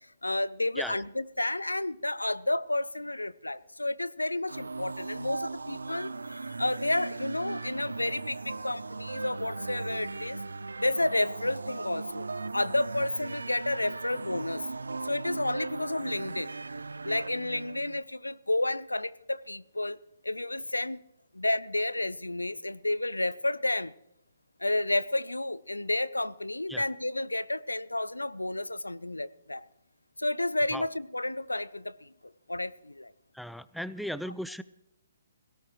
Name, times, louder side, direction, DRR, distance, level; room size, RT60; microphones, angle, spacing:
voice 1, 0.2-10.4 10.8-12.3 12.5-14.6 15.0-16.5 17.0-20.0 20.2-21.0 21.3-23.9 24.6-29.6 30.2-32.1 32.5-33.1, left 2 dB, 85° left, 18 dB, 0.5 m, -31 dB
sound 1, 4.5-18.0, right 3 dB, 75° right, 0.5 m, -38 dB
voice 2, 33.3-34.6, equal, ahead, 16 dB, 0.4 m, -36 dB
18.5 x 17.0 x 3.2 m, 0.80 s
figure-of-eight pair, 130°, 0 cm